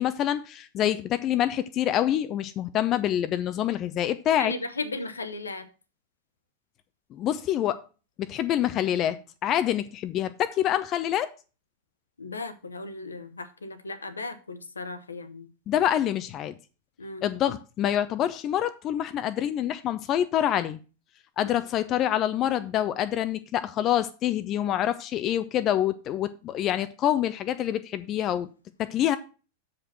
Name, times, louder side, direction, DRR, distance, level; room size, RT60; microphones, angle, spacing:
voice 1, 0.0-4.5 7.1-7.8 8.2-11.3 15.7-16.6 17.2-20.8 21.4-28.5 28.8-29.2, left 11 dB, 35° left, 0.4 m, -26 dB
voice 2, 4.4-5.7 12.2-15.5 17.0-17.2 21.4-21.6, left 3 dB, 75° left, 0.9 m, -36 dB
7.2 x 5.1 x 5.8 m
figure-of-eight pair, 90°, 0 cm